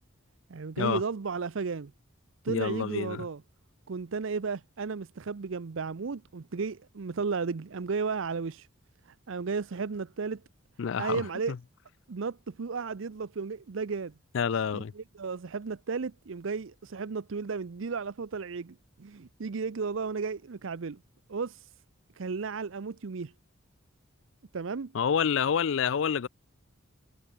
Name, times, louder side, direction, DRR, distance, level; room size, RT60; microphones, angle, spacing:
voice 1, 0.5-1.9 2.4-3.4 3.9-8.7 9.0-10.4 11.0-11.5 12.1-14.2 14.7-21.0 21.3-21.7 22.1-23.3 24.5-24.9, right 5 dB, 70° right, 0.6 m, -34 dB
voice 2, 2.5-3.3 10.8-11.6 14.3-14.9 24.9-26.3, left 7 dB, 65° left, 0.4 m, -28 dB
head